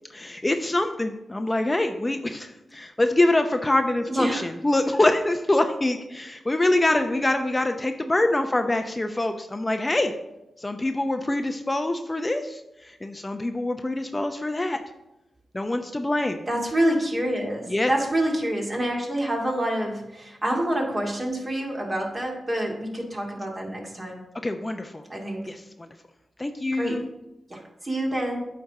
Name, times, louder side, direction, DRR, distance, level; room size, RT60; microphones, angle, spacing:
voice 1, 0.1-10.1 10.6-14.8 15.5-16.4 17.7-17.9 24.4-25.0 25.5-25.9 26.4-27.1, left 1 dB, 25° left, 6 dB, 0.6 m, -25 dB
voice 2, 4.1-4.4 16.5-24.2 25.1-25.4 26.7-27.0 27.5-28.4, right 1 dB, 35° right, -1 dB, 2.3 m, -27 dB
8.9 x 3.4 x 6.5 m, 0.91 s
cardioid pair, 45°, 0 cm